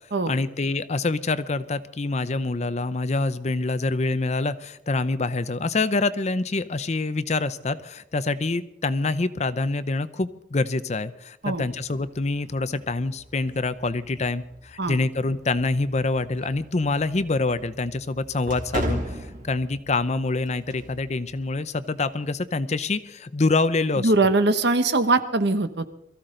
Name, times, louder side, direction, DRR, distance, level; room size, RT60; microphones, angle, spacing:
voice 1, 0.3-24.1, left 3 dB, 35° left, 13 dB, 0.6 m, -26 dB
sound 1, 11.4-22.3, right 1 dB, 45° right, 2.1 m, -38 dB
voice 2, 24.0-25.9, right 3 dB, 60° right, 10 dB, 1.1 m, -21 dB
22.5 x 14.5 x 3.9 m, 0.79 s
head